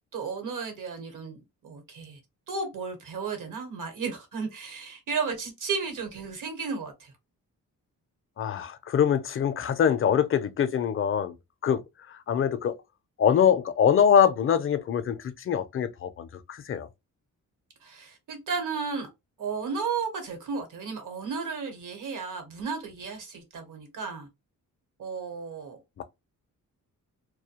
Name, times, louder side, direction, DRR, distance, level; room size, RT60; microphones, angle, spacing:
voice 1, 0.1-2.2 2.5-7.1 17.8-19.1 19.4-24.3 25.0-26.0, right 5 dB, 65° right, 1.0 m, -34 dB
voice 2, 8.4-11.4 11.6-11.8 12.1-12.8 13.2-16.9 26.0-26.1, left 8 dB, 40° left, 0.4 m, -24 dB
2.2 x 2.1 x 2.8 m
cardioid pair, 75°, 34 cm